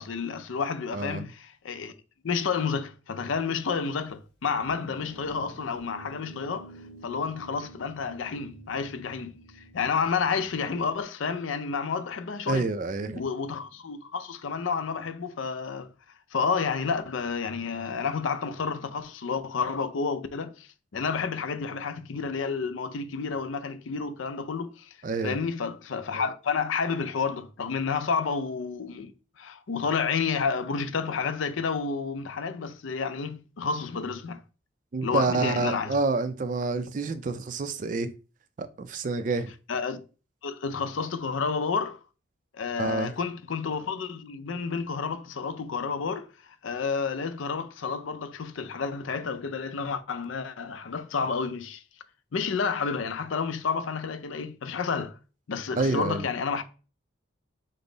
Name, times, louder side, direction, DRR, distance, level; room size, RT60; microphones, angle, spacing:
voice 1, 0.0-1.9 2.2-6.7 7.0-12.7 13.1-15.9 16.3-24.9 25.2-29.1 29.4-34.4 35.0-35.9 39.7-40.0 40.4-42.0 42.5-46.3 46.6-51.8 52.3-55.2 55.5-56.6, left 5 dB, 80° left, 0.5 m, -30 dB
voice 2, 0.9-1.3 12.5-13.2 25.0-25.4 34.9-38.1 38.6-39.5 42.8-43.1 55.8-56.3, right 3 dB, 40° right, 0.4 m, -28 dB
Guitar, 4.5-11.0, right 1 dB, 55° left, 2.4 m, -49 dB
5.3 x 2.0 x 3.8 m
head